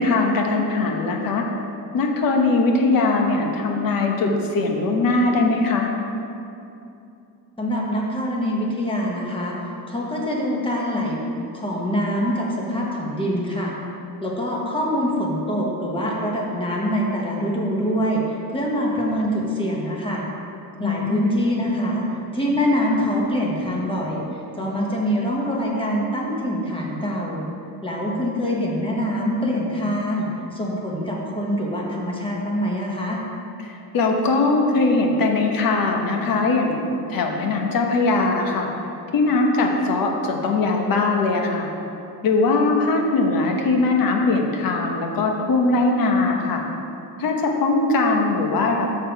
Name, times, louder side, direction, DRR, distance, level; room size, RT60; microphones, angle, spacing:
voice 1, 0.0-1.4 1.9-5.9 20.8-21.4 33.6-36.8 37.1-38.7 39.1-41.7 42.2-46.7 47.2-48.9, left 3 dB, 65° left, 2 dB, 1.1 m, -20 dB
voice 2, 7.6-11.3 11.5-13.7 14.2-18.2 18.5-20.2 20.8-22.0 22.3-24.2 24.5-27.5 27.8-30.3 30.5-33.2, equal, 15° left, -3 dB, 1.2 m, -24 dB
7.2 x 6.7 x 4.6 m, 2.7 s
cardioid pair, 155°, 38 cm